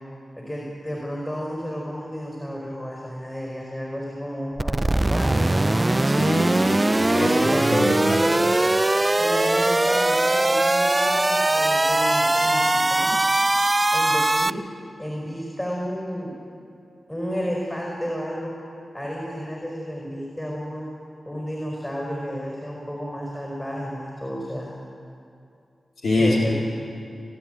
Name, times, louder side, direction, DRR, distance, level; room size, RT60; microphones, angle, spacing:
voice 1, 0.4-5.8 7.1-8.4 9.2-13.2 13.9-14.6 15.0-16.4 17.1-18.5 18.9-20.9 21.2-24.7 26.2-26.5, equal, 15° left, -2 dB, 5.0 m, -31 dB
sound 1, 4.6-14.5, right 2 dB, 25° right, 0.5 m, -21 dB
voice 2, 6.1-7.3 7.6-8.2 26.0-26.5, left 1 dB, 80° left, -5 dB, 3.7 m, -24 dB
27.5 x 10.5 x 9.2 m, 2.6 s
cardioid pair, 40°, 0 cm